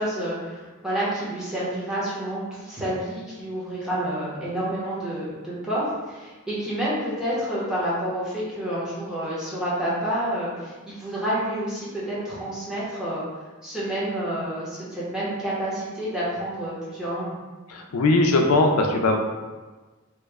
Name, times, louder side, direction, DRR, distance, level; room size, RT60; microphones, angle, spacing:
voice 1, 0.0-13.2 13.6-17.4, right 1 dB, 5° right, -9 dB, 0.8 m, -29 dB
voice 2, 17.7-19.2, left 2 dB, 90° left, 3 dB, 0.4 m, -20 dB
3.0 x 2.1 x 3.4 m, 1.3 s
head